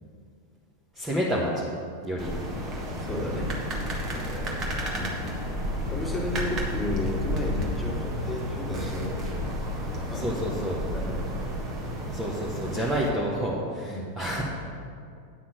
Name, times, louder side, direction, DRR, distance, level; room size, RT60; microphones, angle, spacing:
voice 1, 0.9-1.7 2.0-2.3 4.1-4.3 10.1-10.8 12.1-14.4, equal, 10° right, -5 dB, 1.2 m, -29 dB
sound 1, 2.2-13.1, equal, 30° right, 1.6 m, -32 dB
voice 2, 2.9-3.6 4.9-5.2 5.9-9.3 10.1-11.2 13.9-14.1, left 1 dB, 10° left, -4 dB, 2.1 m, -33 dB
sound 2, 6.4-12.6, left 5 dB, 75° left, 0.4 m, -41 dB
9.5 x 5.8 x 6.3 m, 2.2 s
figure-of-eight pair, 90°, 0 cm